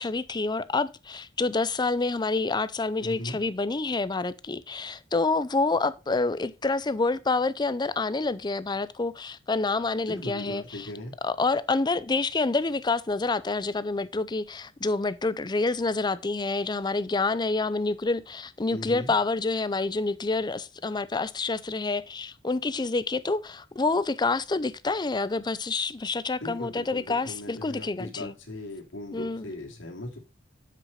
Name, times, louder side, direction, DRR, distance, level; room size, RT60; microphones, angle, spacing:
voice 1, 0.0-10.9 11.2-28.3 29.1-29.5, left 3 dB, 25° left, 0.5 m, -28 dB
voice 2, 3.0-3.4 10.1-11.2 18.7-19.1 26.4-30.2, left 1 dB, 85° left, 2.7 m, -38 dB
7.6 x 6.5 x 5.6 m
head